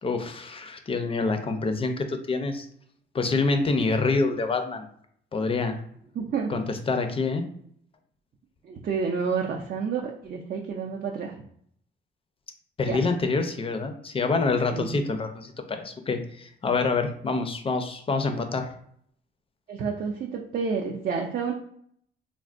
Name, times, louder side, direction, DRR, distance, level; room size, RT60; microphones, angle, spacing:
voice 1, 0.0-2.7 3.1-4.9 5.3-5.8 6.5-7.4 12.8-18.7, left 3 dB, 30° left, 6 dB, 0.5 m, -26 dB
voice 2, 6.1-6.6 8.6-11.4 12.8-13.0 14.7-15.0 19.7-21.5, right 5 dB, 45° right, 1 dB, 0.4 m, -29 dB
3.4 x 2.1 x 2.5 m, 0.65 s
cardioid pair, 90°, 20 cm